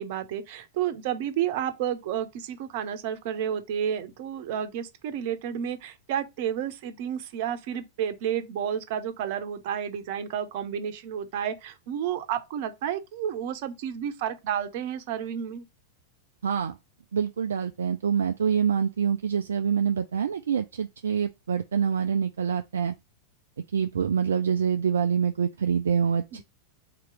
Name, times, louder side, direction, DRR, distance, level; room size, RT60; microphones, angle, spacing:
voice 1, 0.0-15.6 26.3-26.4, right 9 dB, 50° right, 0.7 m, -31 dB
voice 2, 16.4-16.8 17.1-22.9 23.7-26.4, right 7 dB, 65° right, 0.3 m, -26 dB
3.8 x 2.9 x 4.7 m
figure-of-eight pair, 90°, 0 cm